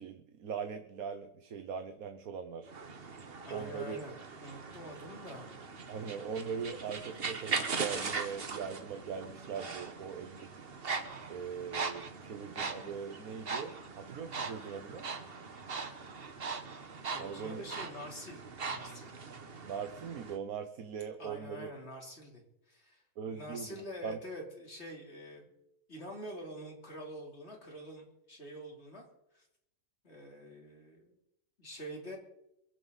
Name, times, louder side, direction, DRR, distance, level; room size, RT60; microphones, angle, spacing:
voice 1, 0.0-2.7 3.5-4.0 5.9-10.7 11.3-15.1 17.2-17.6 19.6-21.7 23.2-23.7 24.0-24.2, right 6 dB, 85° right, 7 dB, 1.5 m, -41 dB
sound 1, 2.7-20.4, right 4 dB, 45° right, 1.4 m, -40 dB
voice 2, 3.4-5.5 17.1-19.1 21.2-25.5 25.9-29.1 29.3-29.5 30.0-31.1 31.6-32.2, equal, 50° left, 0 dB, 3.8 m, -46 dB
24.0 x 11.5 x 4.1 m, 0.82 s
omnidirectional pair, 1.5 m